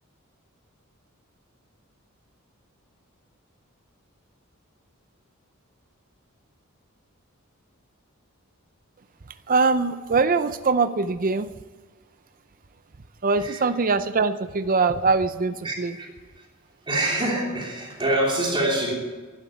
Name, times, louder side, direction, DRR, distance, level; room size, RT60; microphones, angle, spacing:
voice 1, 9.5-11.5 13.2-15.9, right 4 dB, 40° right, 11 dB, 0.6 m, -22 dB
voice 2, 15.6-16.5 16.8-18.9, right 1 dB, 25° right, -1 dB, 3.0 m, -26 dB
12.0 x 11.0 x 8.5 m, 1.4 s
head